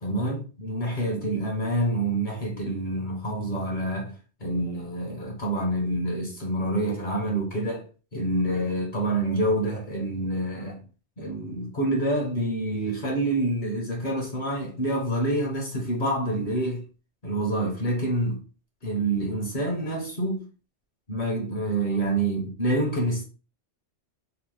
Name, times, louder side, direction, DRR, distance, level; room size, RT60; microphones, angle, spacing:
voice 1, 0.0-4.1 4.4-7.8 8.1-10.8 11.2-16.8 17.2-18.4 18.8-20.4 21.1-23.2, right 1 dB, 50° left, 0.8 m, -27 dB
2.9 x 2.0 x 3.0 m
omnidirectional pair, 1.2 m